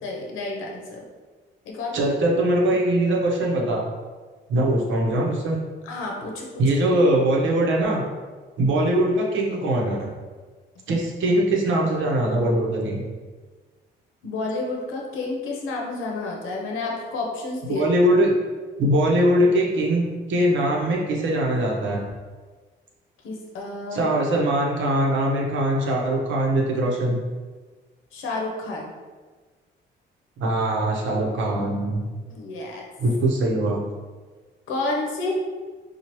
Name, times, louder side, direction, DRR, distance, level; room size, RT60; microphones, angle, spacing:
voice 1, 0.0-1.1 1.6-2.1 5.8-6.5 14.2-17.8 23.2-24.1 28.1-28.9 32.3-32.9 34.7-35.3, left 3 dB, 90° left, -1 dB, 0.8 m, -30 dB
voice 2, 1.9-3.8 4.5-5.6 6.6-8.0 8.6-10.1 10.9-13.0 17.7-18.3 18.8-20.0 20.3-22.0 23.9-27.2 30.4-32.1 33.0-33.8, right 1 dB, 75° right, -1 dB, 0.8 m, -21 dB
4.4 x 2.3 x 3.0 m, 1.4 s
cardioid pair, 90°, 20 cm